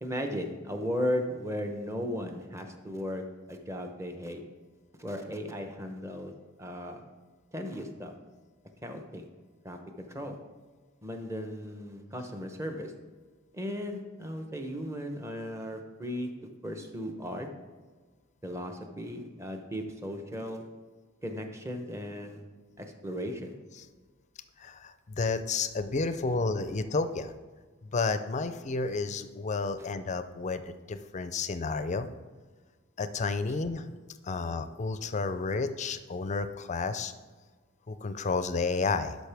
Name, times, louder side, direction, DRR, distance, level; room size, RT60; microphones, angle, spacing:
voice 1, 0.0-4.4 5.0-6.3 6.6-7.0 7.5-8.1 8.8-9.3 9.6-9.8 10.1-10.4 11.0-12.9 13.5-16.3 16.6-17.5 18.4-20.7 21.2-22.4 22.8-23.5 29.8-29.9, equal, 15° right, 5 dB, 0.8 m, -36 dB
voice 2, 24.6-27.3 27.9-32.1 33.0-33.9 34.2-37.1 37.9-39.2, left 4 dB, 35° left, 11 dB, 0.4 m, -31 dB
12.5 x 5.2 x 3.4 m, 1.4 s
head